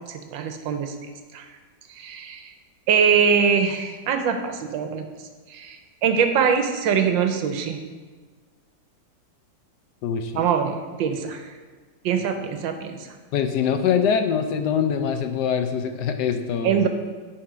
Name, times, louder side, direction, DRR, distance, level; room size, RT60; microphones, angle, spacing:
voice 1, 0.1-0.9 1.3-1.4 2.0-2.5 2.9-5.0 5.5-7.8 10.3-11.5 12.0-13.1 16.6-16.9, right 7 dB, 90° right, 6 dB, 1.5 m, -23 dB
voice 2, 10.0-10.4 13.3-16.9, left 7 dB, 70° left, 7 dB, 1.1 m, -23 dB
9.4 x 4.3 x 5.0 m, 1.4 s
omnidirectional pair, 2.1 m